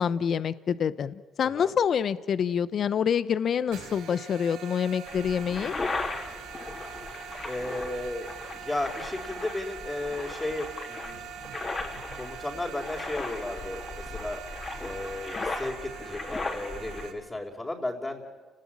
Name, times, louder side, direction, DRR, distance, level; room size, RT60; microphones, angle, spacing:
voice 1, 0.0-5.7, left 7 dB, 55° left, 15 dB, 0.9 m, -27 dB
voice 2, 1.4-1.7 7.4-11.3 12.1-14.4 14.8-18.4, left 2 dB, 20° left, -3 dB, 4.2 m, -34 dB
sound 1, 3.7-17.1, right 8 dB, 85° right, 4.5 m, -43 dB
sound 2, 5.1-17.1, left 3 dB, 35° left, 4.0 m, -37 dB
29.5 x 19.5 x 8.9 m, 1.3 s
supercardioid pair, 70°, 0 cm